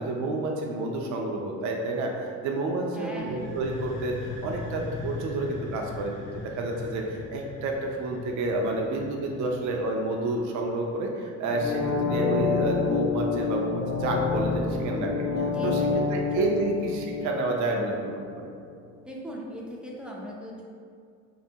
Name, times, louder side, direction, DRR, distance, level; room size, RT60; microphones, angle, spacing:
voice 1, 0.0-15.3 15.6-15.8 16.1-18.5, right 2 dB, 70° right, 1 dB, 0.4 m, -30 dB
voice 2, 2.9-3.4 15.5-16.4 16.8-16.9 19.1-20.6, equal, 5° right, -3 dB, 0.4 m, -39 dB
sound 1, 3.2-10.8, left 3 dB, 90° left, 0.8 m, -40 dB
sound 2, 11.5-18.3 18.7-18.8, left 4 dB, 55° left, 0.5 m, -28 dB
2.5 x 2.4 x 2.7 m, 2.2 s
cardioid pair, 90°, 30 cm